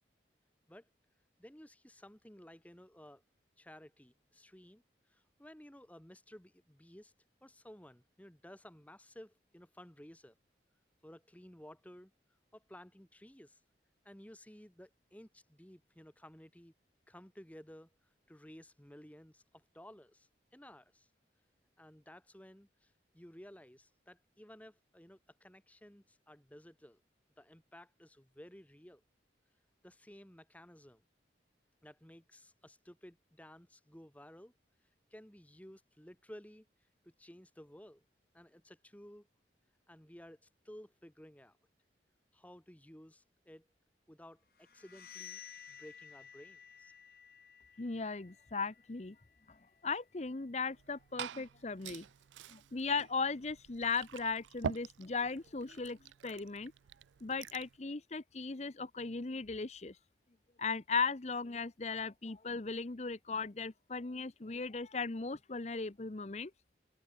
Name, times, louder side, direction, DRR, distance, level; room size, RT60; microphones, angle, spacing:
voice 1, 1.4-3.2 3.6-7.1 7.4-10.4 11.0-12.1 12.5-13.6 14.0-16.7 17.1-21.1 21.8-27.0 27.4-29.0 29.8-31.0 31.8-34.5 35.1-36.7 37.0-38.0 38.3-39.3 39.9-40.4 40.6-41.6 42.3-43.7 44.1-45.4 45.7-46.9, equal, 10° left, 1.5 m, -55 dB
sound 1, 44.5-50.2, left 8 dB, 55° left, 2.8 m, -55 dB
voice 2, 47.8-49.2 49.5-49.6 49.8-52.1 52.5-56.7 57.2-60.0 60.6-66.5, left 4 dB, 40° left, 0.8 m, -37 dB
Liquid, 50.7-57.8, right 7 dB, 85° right, 0.4 m, -46 dB
open air
head